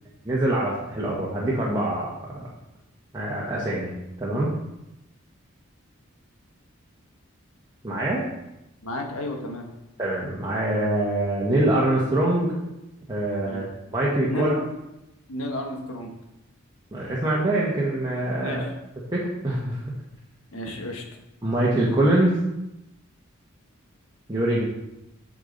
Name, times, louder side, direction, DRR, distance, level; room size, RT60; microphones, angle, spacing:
voice 1, 0.2-2.1 2.3-2.4 3.1-3.9 4.2-4.5 7.8-8.2 10.0-12.5 13.1-13.6 13.9-14.5 16.9-18.6 19.1-19.8 21.4-22.4 24.3-24.6, right 1 dB, 20° right, -6 dB, 1.2 m, -24 dB
voice 2, 8.8-9.7 13.4-13.7 14.3-14.7 15.3-16.1 18.4-18.7 20.5-21.0, left 1 dB, 80° left, 2 dB, 1.4 m, -32 dB
8.4 x 5.3 x 4.0 m, 0.91 s
head